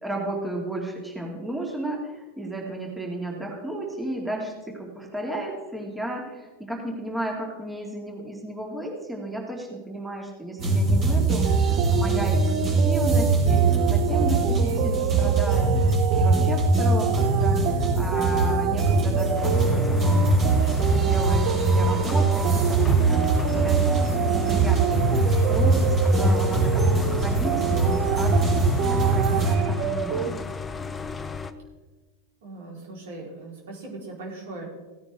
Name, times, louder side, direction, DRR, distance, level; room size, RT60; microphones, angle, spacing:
voice 1, 0.0-20.3 20.8-28.6 28.9-30.4, right 1 dB, 5° right, -1 dB, 2.6 m, -33 dB
sound 1, 10.6-29.6, right 3 dB, 35° right, 4.6 m, -22 dB
sound 2, 11.3-30.3, right 10 dB, 55° right, 0.7 m, -29 dB
sound 3, 19.3-31.5, left 5 dB, 20° left, 0.8 m, -35 dB
voice 2, 32.4-34.7, right 2 dB, 70° right, -2 dB, 4.4 m, -39 dB
16.0 x 9.7 x 3.8 m, 1.2 s
hypercardioid pair, 105°, 0 cm